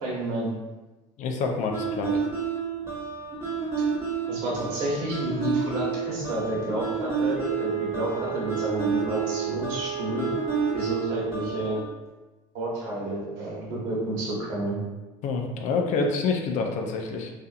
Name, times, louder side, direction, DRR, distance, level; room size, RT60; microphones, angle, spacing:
voice 1, 0.0-0.5 4.3-10.3 10.7-11.8 12.5-14.8, right 1 dB, 70° right, -5 dB, 1.1 m, -30 dB
voice 2, 1.2-2.2 15.2-17.3, left 4 dB, 55° left, 3 dB, 0.4 m, -27 dB
sound 1, 1.7-11.8, right 6 dB, 15° right, 0.9 m, -30 dB
Wind instrument woodwind instrument, 7.3-11.5, right 7 dB, 5° left, 1.1 m, -34 dB
2.5 x 2.5 x 2.3 m, 1.1 s
hypercardioid pair, 80°, 15 cm